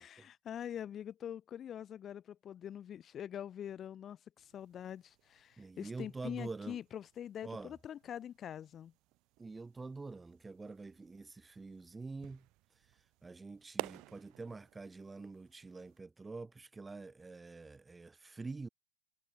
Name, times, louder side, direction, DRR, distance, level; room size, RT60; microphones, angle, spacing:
voice 1, 0.0-8.9, left 9 dB, 25° left, 1.7 m, -44 dB
sound 1, 4.4-16.0, right 21 dB, 40° right, 4.1 m, -52 dB
voice 2, 5.6-6.8 7.4-7.7 9.4-12.4 13.2-18.7, right 3 dB, 10° right, 1.6 m, -46 dB
supercardioid pair, 155°, 0 cm